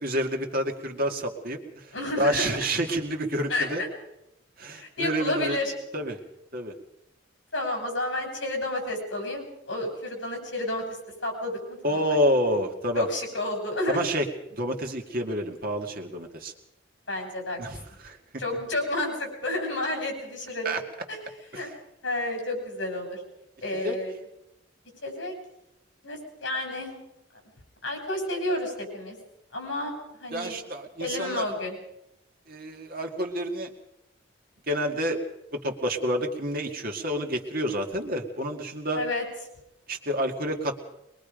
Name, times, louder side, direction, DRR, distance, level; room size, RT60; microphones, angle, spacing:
voice 1, 0.0-3.8 4.6-5.6 5.9-6.2 6.5-6.7 11.8-13.1 13.9-14.2 14.5-16.5 17.6-18.2 20.6-20.8 21.5-21.7 23.8-24.0 30.3-31.4 32.5-33.7 34.7-35.2 35.6-39.0 39.9-40.8, equal, 50° right, 3 dB, 2.2 m, -28 dB
voice 2, 1.9-2.5 3.5-3.9 4.7-5.7 7.5-10.8 11.2-12.2 13.0-14.0 17.1-17.6 18.4-20.8 21.1-21.2 21.5-21.7 22.0-23.2 23.6-24.1 25.0-25.3 26.0-26.9 27.8-29.2 29.5-29.9 30.2-30.6 31.0-31.8 38.9-39.2, left 1 dB, 75° left, 3 dB, 6.9 m, -30 dB
22.5 x 22.0 x 5.2 m, 0.85 s
head